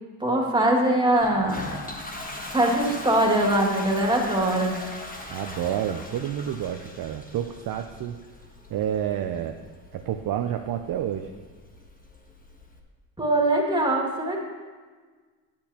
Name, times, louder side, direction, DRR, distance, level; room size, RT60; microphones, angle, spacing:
voice 1, 0.2-1.6 2.5-4.8 13.2-14.4, right 1 dB, 10° right, -1 dB, 2.1 m, -22 dB
Toilet flush, 1.2-12.8, left 1 dB, 20° left, 1.3 m, -40 dB
voice 2, 5.3-8.2 8.7-9.6 9.9-11.3, right 10 dB, 50° right, 6 dB, 0.6 m, -29 dB
10.5 x 8.7 x 2.9 m, 1.4 s
supercardioid pair, 75°, 46 cm